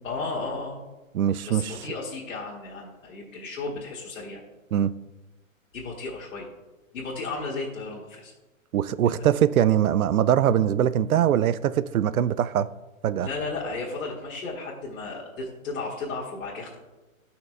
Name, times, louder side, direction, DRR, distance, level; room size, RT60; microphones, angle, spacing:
voice 1, 0.0-0.8 1.5-4.4 5.7-6.5 6.9-8.3 9.0-9.3 13.2-16.8, left 3 dB, 65° left, -5 dB, 1.7 m, -34 dB
voice 2, 1.1-1.7 4.7-4.9 8.7-12.7 13.0-13.3, right 10 dB, 85° right, 16 dB, 0.5 m, -22 dB
16.0 x 5.8 x 2.2 m, 1.1 s
hypercardioid pair, 150°, 41 cm